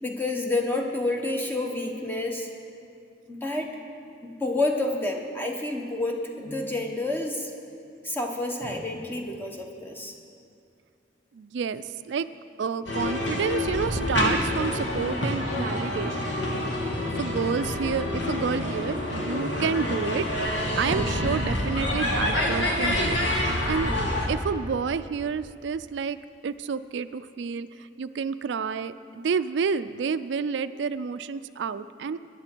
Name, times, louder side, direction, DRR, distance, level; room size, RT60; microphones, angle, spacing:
voice 1, 0.0-2.5 3.3-3.7 4.2-7.5 8.0-10.1, left 2 dB, 10° left, 2 dB, 1.0 m, -29 dB
voice 2, 11.3-12.3 12.6-16.6 17.2-20.3 20.8-23.2 23.6-23.9 24.3-26.2 26.4-27.7 28.0-32.2, right 6 dB, 70° right, 12 dB, 0.4 m, -29 dB
sound 1, 12.9-24.3, left 1 dB, 75° left, 1.8 m, -27 dB
17.5 x 10.5 x 4.5 m, 2.5 s
head